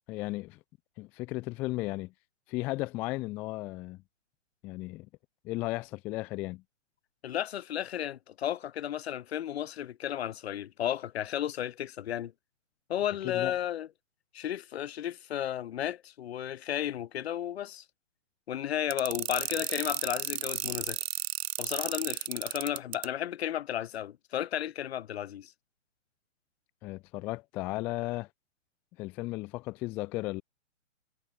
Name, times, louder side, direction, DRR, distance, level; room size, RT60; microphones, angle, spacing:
voice 1, 0.1-0.6 1.0-2.1 2.5-4.0 4.6-5.1 5.4-6.6 13.2-13.5 26.8-28.3 29.0-30.4, left 20 dB, 5° left, 0.4 m, -35 dB
voice 2, 7.2-12.3 12.9-13.9 14.3-17.8 18.5-21.0 21.6-25.5, left 11 dB, 55° left, 5.8 m, -33 dB
sound 1, 18.9-23.1, right 11 dB, 55° right, 2.3 m, -33 dB
hypercardioid pair, 140°, 38 cm